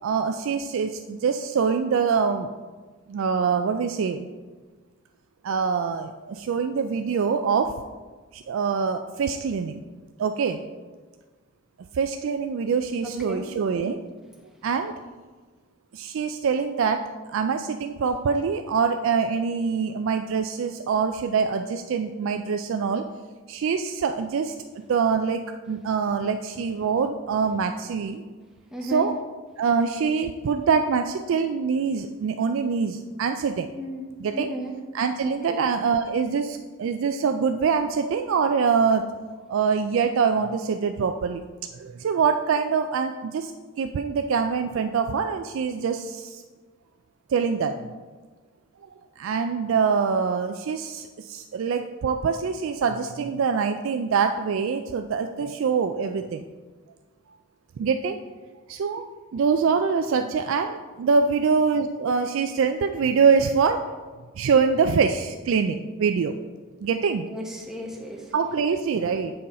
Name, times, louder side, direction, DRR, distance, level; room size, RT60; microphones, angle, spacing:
voice 1, 0.0-2.5 3.1-4.3 5.4-7.7 8.3-9.8 10.2-10.6 11.9-14.0 14.6-14.9 15.9-17.0 17.3-23.1 23.5-24.5 24.9-25.4 25.7-28.2 28.8-29.1 29.6-33.7 34.2-34.5 34.9-39.1 39.5-41.4 41.7-43.5 43.8-46.4 47.3-47.7 48.8-48.9 49.2-56.5 57.8-58.2 58.7-59.0 59.3-63.8 64.4-66.3 66.8-67.3 68.3-69.3, right 5 dB, 65° right, 7 dB, 0.3 m, -24 dB
voice 2, 13.0-13.4 28.7-29.1 33.7-34.8 35.2-35.6 67.3-68.3, equal, ahead, 0 dB, 0.8 m, -35 dB
7.7 x 5.5 x 4.1 m, 1.4 s
head